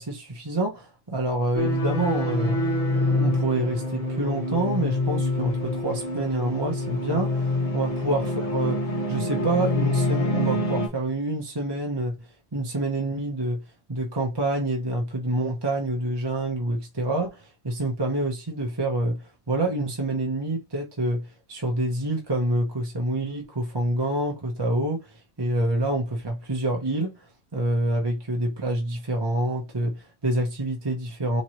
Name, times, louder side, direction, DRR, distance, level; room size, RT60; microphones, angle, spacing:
voice 1, 0.0-2.6 2.9-8.8 9.1-13.6 13.9-27.1 27.5-31.4, right 1 dB, 20° right, 0.8 m, -27 dB
sound 1, 1.5-10.9, left 2 dB, 30° left, 1.2 m, -26 dB
4.4 x 3.1 x 2.9 m
omnidirectional pair, 1.4 m